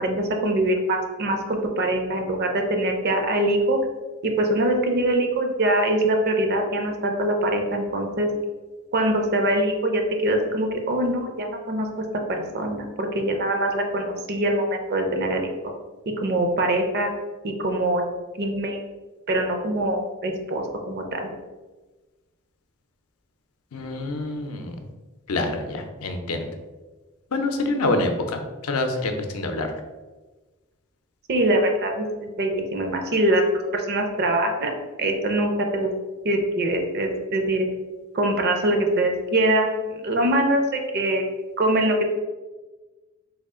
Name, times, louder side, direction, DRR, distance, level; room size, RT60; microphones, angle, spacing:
voice 1, 0.0-3.8 4.2-8.3 8.9-11.9 12.3-15.7 16.2-17.1 17.4-18.0 18.4-18.8 19.3-21.3 31.3-33.4 33.7-35.9 36.2-37.7 38.1-41.2 41.6-42.0, right 1 dB, 50° right, 4 dB, 0.5 m, -23 dB
voice 2, 23.7-24.8 25.3-26.5 27.3-29.7, left 2 dB, 80° left, 5 dB, 0.5 m, -26 dB
3.5 x 2.4 x 3.6 m, 1.2 s
head